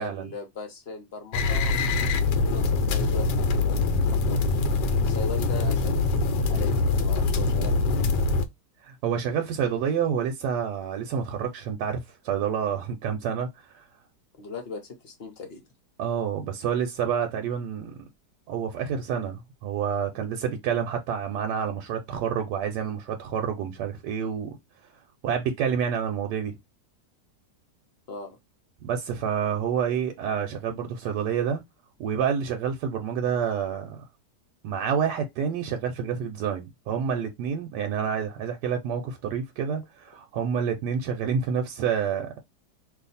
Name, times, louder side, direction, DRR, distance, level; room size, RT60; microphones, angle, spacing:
voice 1, 0.0-4.6 5.0-6.7 7.0-8.1 14.4-15.6 28.1-28.4 39.0-39.1, left 4 dB, 50° left, 0.8 m, -39 dB
sound 1, 1.3-8.4, left 3 dB, 90° left, 1.2 m, -24 dB
voice 2, 8.8-13.8 16.0-17.9 18.5-24.6 25.2-26.5 28.8-31.6 32.0-34.0 34.6-42.3, right 7 dB, 80° right, 1.2 m, -28 dB
2.6 x 2.5 x 4.0 m
omnidirectional pair, 1.8 m